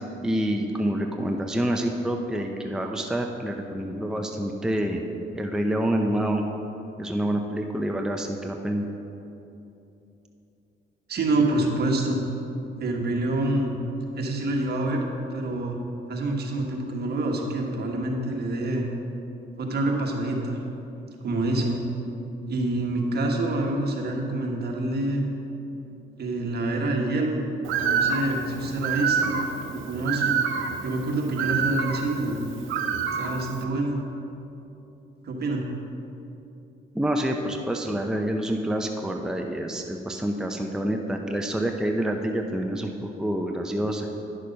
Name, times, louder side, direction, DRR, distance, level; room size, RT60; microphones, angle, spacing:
voice 1, 0.2-5.0 5.3-6.4 7.0-8.9 36.9-44.1, right 1 dB, 5° right, 3 dB, 0.6 m, -27 dB
voice 2, 11.1-12.2 12.8-13.7 14.2-15.0 15.3-15.8 16.1-18.9 19.6-20.6 21.2-21.8 22.5-25.3 26.2-27.4 27.8-29.4 29.8-30.4 30.8-32.4 33.1-34.0 35.2-35.7, right 2 dB, 55° right, 1 dB, 1.4 m, -26 dB
Bird, 27.6-33.6, right 6 dB, 85° right, 0.7 m, -28 dB
10.0 x 6.5 x 5.3 m, 2.9 s
cardioid pair, 90°, 20 cm